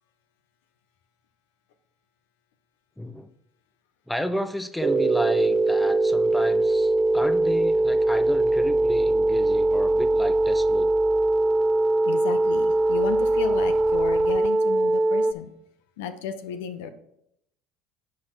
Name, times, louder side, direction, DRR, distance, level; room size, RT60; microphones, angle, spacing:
voice 1, 3.0-3.3 4.1-10.9, equal, 5° left, 11 dB, 0.7 m, -32 dB
sound 1, 4.8-15.3, right 2 dB, 25° right, 0.5 m, -21 dB
voice 2, 12.1-15.5 16.0-16.9, left 7 dB, 80° left, 9 dB, 0.9 m, -33 dB
9.6 x 5.0 x 4.4 m, 0.77 s
hypercardioid pair, 85°, 0 cm